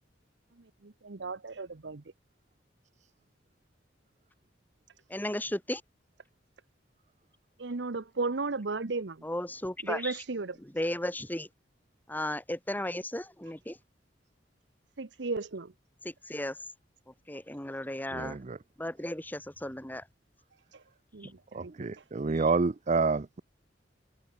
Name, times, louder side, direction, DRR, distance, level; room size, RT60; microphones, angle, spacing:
voice 1, 0.8-2.0 7.6-9.3 9.8-10.6 15.0-15.7 20.7-20.8 21.1-22.0, right 3 dB, 70° right, 0.9 m, -35 dB
voice 2, 5.1-5.8 9.2-10.2 10.6-11.5 12.1-13.8 16.0-16.7 17.1-18.4 18.8-20.1 21.2-21.3 22.3-22.5, left 1 dB, 10° left, 2.1 m, -35 dB
voice 3, 18.1-18.6 21.5-23.4, right 4 dB, 40° right, 0.6 m, -28 dB
head